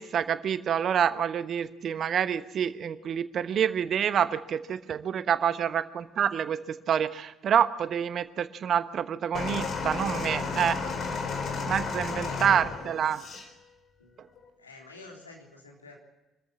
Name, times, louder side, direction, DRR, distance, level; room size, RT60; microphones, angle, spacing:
voice 1, 0.0-10.8 11.7-13.2 14.2-14.3, right 8 dB, 45° right, 13 dB, 1.1 m, -27 dB
sound 1, 9.3-13.5 14.4-14.5, left 4 dB, 45° left, 4.1 m, -33 dB
voice 2, 14.6-16.0, left 3 dB, 85° left, -1 dB, 3.6 m, -49 dB
25.0 x 14.0 x 8.7 m, 1.0 s
figure-of-eight pair, 50°, 0 cm